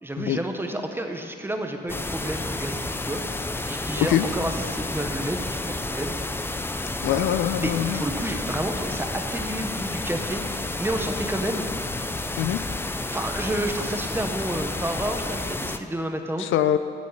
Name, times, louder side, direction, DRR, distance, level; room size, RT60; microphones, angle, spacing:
voice 1, 0.0-3.4 3.7-6.1 7.6-10.4 10.8-11.6 13.1-16.5, right 1 dB, 10° right, 5 dB, 1.0 m, -30 dB
sound 1, 1.9-15.8, left 2 dB, 10° left, 0.5 m, -30 dB
voice 2, 7.0-8.0 12.4-12.6 16.4-16.8, left 11 dB, 75° left, 11 dB, 0.5 m, -23 dB
15.0 x 6.3 x 5.8 m, 2.5 s
cardioid pair, 90°, 20 cm